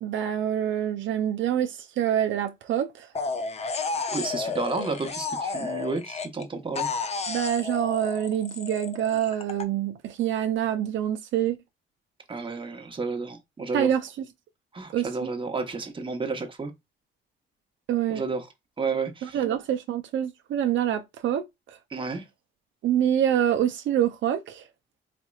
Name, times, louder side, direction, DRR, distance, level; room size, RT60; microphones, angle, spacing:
voice 1, 0.0-3.1 7.3-11.6 13.7-14.3 14.9-15.3 17.9-18.2 19.2-21.8 22.8-24.7, right 10 dB, 70° right, 0.5 m, -26 dB
sound 1, 3.1-6.4 6.8-9.6, left 4 dB, 35° left, 0.6 m, -32 dB
voice 2, 4.1-6.9 12.3-13.9 14.7-16.7 18.1-18.5 18.8-19.4 21.9-22.2, right 4 dB, 25° right, 1.0 m, -31 dB
4.2 x 2.9 x 2.3 m
cardioid pair, 90°, 20 cm